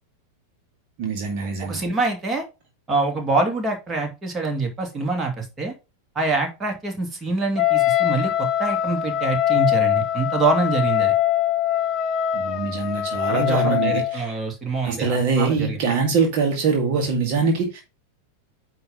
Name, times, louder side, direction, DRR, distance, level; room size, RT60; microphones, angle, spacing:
voice 1, 1.0-1.8 12.3-14.3 14.8-17.8, right 4 dB, 45° right, 1.8 m, -23 dB
voice 2, 1.6-2.4 2.9-5.7 6.2-11.1 13.3-15.8, right 3 dB, 20° right, 2.4 m, -25 dB
Wind instrument woodwind instrument, 7.6-14.2, left 12 dB, 35° left, 0.6 m, -22 dB
9.4 x 3.2 x 5.4 m
figure-of-eight pair, 90°, 0 cm